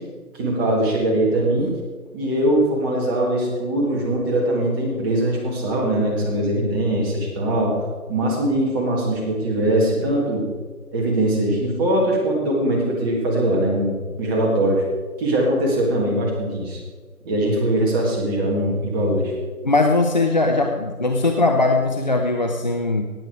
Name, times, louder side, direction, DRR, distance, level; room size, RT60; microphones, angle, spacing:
voice 1, 0.3-1.7 2.1-7.8 8.1-10.4 10.9-14.8 15.2-16.8 17.2-19.3, right 1 dB, 15° right, -1 dB, 1.7 m, -21 dB
voice 2, 19.6-23.1, left 2 dB, 30° left, 4 dB, 0.6 m, -20 dB
17.5 x 8.5 x 4.7 m, 1.5 s
figure-of-eight pair, 155°, 44 cm